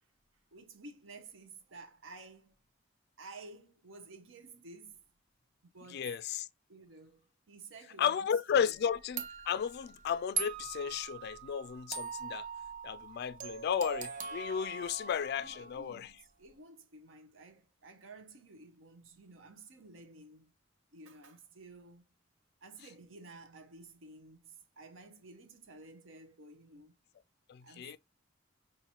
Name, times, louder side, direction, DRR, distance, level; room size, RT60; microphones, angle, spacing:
voice 1, 0.5-2.6 3.2-5.0 5.7-6.1 6.7-8.7 15.4-20.5 20.9-22.0 22.6-26.9 27.6-28.0, right 3 dB, 80° right, 0.8 m, -53 dB
voice 2, 5.9-6.5 8.0-12.5 12.8-16.1 27.5-28.0, left 8 dB, 55° left, 0.3 m, -34 dB
sound 1, 8.7-8.8 9.2-15.9, right 6 dB, 45° right, 0.7 m, -42 dB
5.5 x 2.5 x 2.9 m
head